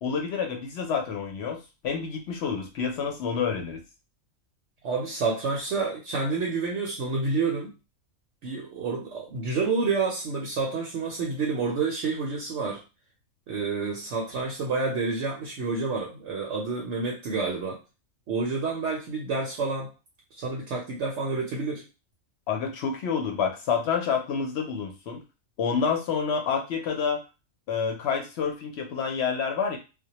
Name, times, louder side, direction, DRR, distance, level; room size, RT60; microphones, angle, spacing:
voice 1, 0.0-3.8 22.5-25.2 25.6-27.2 27.7-29.8, left 6 dB, 65° left, 3 dB, 0.7 m, -28 dB
voice 2, 4.8-7.7 8.4-12.8 13.5-17.8 18.3-19.9 20.4-21.8, right 4 dB, 65° right, -1 dB, 0.8 m, -29 dB
2.1 x 2.1 x 2.8 m, 0.29 s
omnidirectional pair, 1.4 m